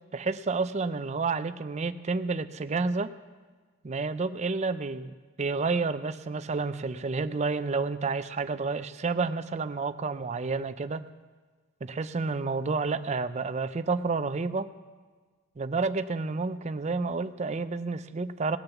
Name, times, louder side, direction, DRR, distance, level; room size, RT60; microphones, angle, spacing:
voice 1, 0.1-3.1 3.8-11.0 11.8-14.7 15.6-18.6, right 4 dB, 35° right, 12 dB, 0.5 m, -30 dB
19.0 x 6.7 x 7.1 m, 1.4 s
head